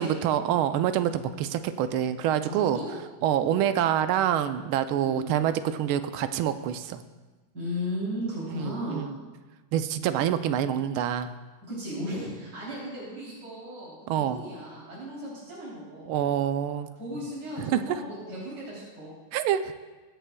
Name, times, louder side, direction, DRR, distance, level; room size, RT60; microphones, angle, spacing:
voice 1, 0.0-2.8 3.2-7.0 8.6-9.1 9.7-11.3 14.1-14.4 16.1-16.9 17.6-17.8 19.3-19.6, right 10 dB, 90° right, 10 dB, 1.4 m, -26 dB
voice 2, 2.5-2.9 3.3-3.6 5.0-5.3 7.5-9.0 11.7-14.0 14.3-16.1 17.0-19.1, equal, 45° right, -8 dB, 3.7 m, -35 dB
21.5 x 7.9 x 2.2 m, 1.3 s
omnidirectional pair, 2.2 m